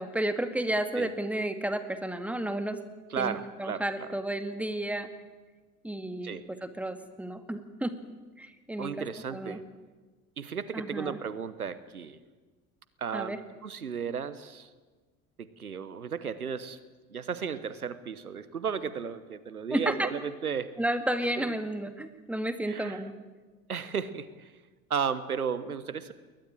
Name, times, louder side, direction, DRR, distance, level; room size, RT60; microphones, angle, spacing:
voice 1, 0.0-2.8 3.2-5.1 5.8-6.3 6.6-7.9 8.4-9.1 9.3-9.6 10.7-11.2 13.1-13.4 19.7-20.1 20.8-23.1, right 1 dB, 5° right, 9 dB, 2.0 m, -32 dB
voice 2, 3.1-4.1 6.2-6.4 8.8-9.6 10.4-12.2 13.0-14.7 15.4-16.8 17.1-20.7 21.4-21.5 22.7-23.0 23.7-24.5 24.9-26.1, right 6 dB, 85° right, 15 dB, 1.1 m, -34 dB
21.5 x 19.5 x 8.9 m, 1.3 s
figure-of-eight pair, 65°, 43 cm